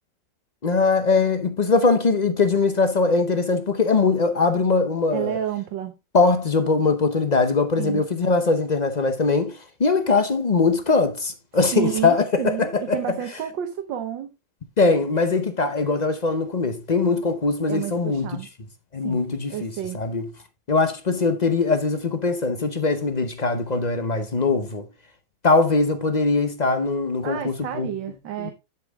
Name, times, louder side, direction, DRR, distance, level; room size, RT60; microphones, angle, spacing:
voice 1, 0.6-5.4 6.1-13.0 14.8-18.4 18.9-20.2 20.7-24.9 25.4-27.9 28.4-28.5, left 4 dB, 45° left, 0.5 m, -21 dB
voice 2, 5.1-5.9 7.8-8.0 11.7-14.3 17.7-18.5 19.0-19.2 19.5-20.0 27.2-28.5, right 11 dB, 85° right, 1.7 m, -30 dB
11.0 x 5.2 x 3.5 m
omnidirectional pair, 1.9 m